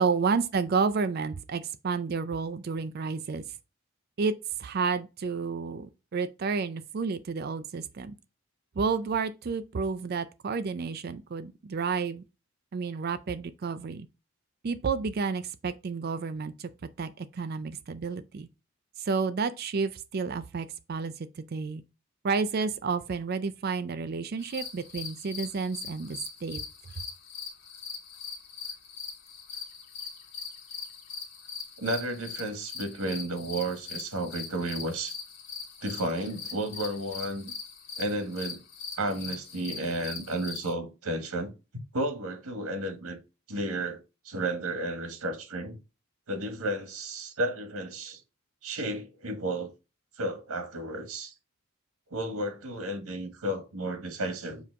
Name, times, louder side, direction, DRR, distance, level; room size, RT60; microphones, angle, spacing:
voice 1, 0.0-3.4 4.2-8.2 8.8-12.2 12.7-14.1 14.6-16.7 17.0-18.5 19.0-21.8 22.2-26.6 26.9-27.0, right 5 dB, 45° right, 0.4 m, -30 dB
sound 1, 24.4-40.7, left 5 dB, 65° left, 1.5 m, -41 dB
voice 2, 31.8-35.2 35.8-37.5 38.0-38.6 39.0-41.5 41.9-43.2 43.5-44.0 44.2-45.8 46.3-48.2 48.6-49.7 50.2-51.3 52.1-54.6, right 1 dB, 90° right, 1.5 m, -32 dB
7.1 x 2.9 x 4.6 m
head